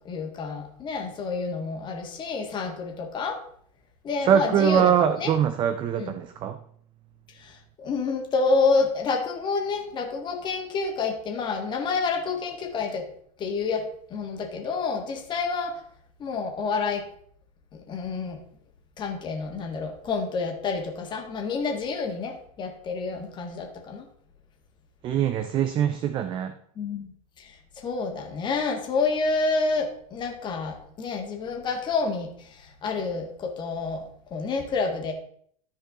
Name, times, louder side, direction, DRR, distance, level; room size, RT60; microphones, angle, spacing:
voice 1, 0.0-3.4 4.0-5.3 6.0-6.1 7.8-13.0 13.4-15.7 16.2-17.0 17.9-18.4 19.0-24.1 26.8-27.1 27.8-32.3 32.8-34.0 34.3-35.1, left 4 dB, 25° left, 2 dB, 1.7 m, -28 dB
voice 2, 4.2-6.6 25.0-26.5, right 8 dB, 25° right, 10 dB, 0.5 m, -23 dB
13.5 x 4.7 x 3.7 m, 0.62 s
supercardioid pair, 145°, 19 cm